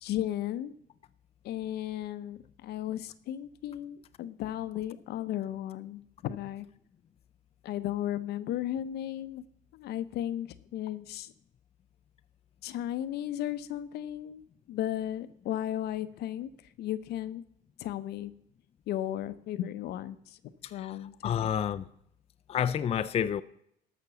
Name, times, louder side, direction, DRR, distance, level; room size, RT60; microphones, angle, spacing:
voice 1, 0.0-0.7 1.4-6.7 7.6-9.4 9.7-11.3 12.6-14.4 14.7-16.5 16.8-17.4 17.8-18.3 18.9-20.4 20.7-21.5, left 12 dB, 75° left, 0.8 m, -35 dB
voice 2, 21.2-21.9 22.5-23.4, left 9 dB, 35° left, 0.5 m, -29 dB
13.0 x 6.0 x 6.8 m
cardioid pair, 110°, 17 cm